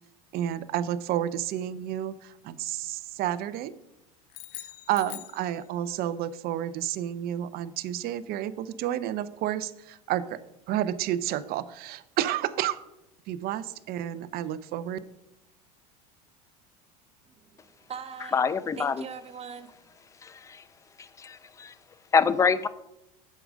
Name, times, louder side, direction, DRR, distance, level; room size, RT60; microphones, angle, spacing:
voice 1, 0.3-3.7 4.6-10.4 10.7-12.8 13.3-15.0, right 12 dB, 50° right, 0.6 m, -30 dB
sound 1, 4.3-6.1, left 17 dB, 65° left, 0.6 m, -43 dB
voice 2, 17.3-18.4 18.8-19.7, right 6 dB, 30° right, 1.0 m, -42 dB
voice 3, 18.3-19.0 20.2-20.6 21.0-21.7 22.1-22.7, left 5 dB, 15° left, 0.4 m, -25 dB
7.7 x 6.4 x 5.1 m
hypercardioid pair, 90°, 21 cm